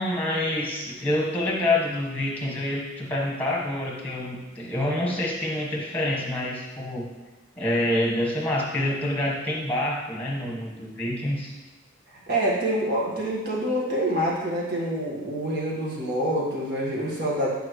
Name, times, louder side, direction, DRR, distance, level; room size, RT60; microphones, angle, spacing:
voice 1, 0.0-7.1 7.6-11.5, left 1 dB, 10° left, -3 dB, 1.3 m, -27 dB
voice 2, 12.1-17.5, right 1 dB, 50° right, -5 dB, 1.6 m, -26 dB
9.0 x 5.2 x 3.1 m, 1.2 s
head